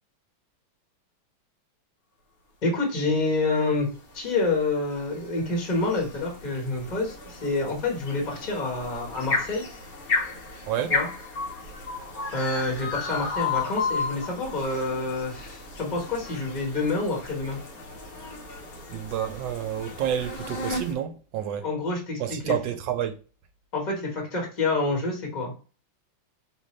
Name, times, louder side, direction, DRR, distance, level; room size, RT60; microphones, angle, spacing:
voice 1, 2.6-3.9 4.1-9.6 10.9-11.1 12.3-17.6 21.6-22.5 23.7-25.5, left 3 dB, 25° left, 1.2 m, -27 dB
sound 1, 3.6-20.9, left 4 dB, 50° left, 1.4 m, -34 dB
voice 2, 10.7-11.0 18.9-21.7 22.2-23.1, right 10 dB, 75° right, 1.2 m, -29 dB
5.4 x 2.5 x 3.1 m
omnidirectional pair, 2.2 m